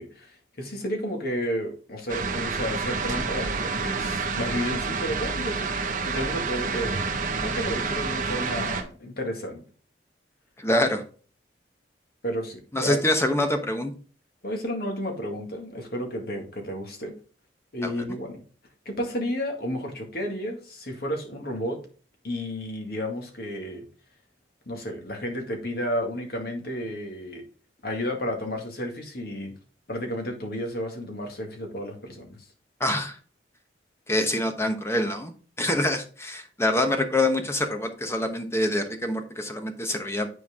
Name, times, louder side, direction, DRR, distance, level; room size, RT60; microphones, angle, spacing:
voice 1, 0.0-5.7 6.0-9.6 12.2-13.0 14.4-17.1 17.7-18.4 18.9-21.8 22.2-23.9 24.7-27.4 27.8-29.5 29.9-32.4, equal, 55° left, 3 dB, 2.0 m, -32 dB
sound 1, 2.1-8.8, right 4 dB, 45° right, 1.3 m, -28 dB
voice 2, 10.6-11.0 12.7-13.9 17.8-17.9 32.8-33.2 34.1-35.3 35.6-40.3, left 1 dB, 15° left, 6 dB, 1.1 m, -25 dB
9.7 x 4.6 x 3.6 m, 0.40 s
head